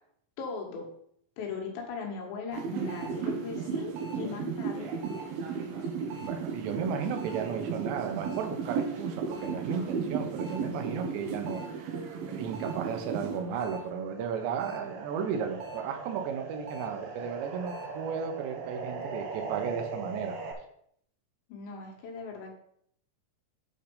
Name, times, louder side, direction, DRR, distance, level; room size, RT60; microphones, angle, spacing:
voice 1, 0.4-0.9 1.4-4.9 21.5-22.5, left 5 dB, 90° left, 0 dB, 4.0 m, -38 dB
sound 1, 2.5-13.8 14.2-20.5, right 5 dB, 70° right, 2.7 m, -36 dB
voice 2, 6.2-20.4, right 6 dB, 85° right, 5 dB, 3.3 m, -34 dB
9.2 x 4.4 x 5.5 m, 0.68 s
omnidirectional pair, 5.0 m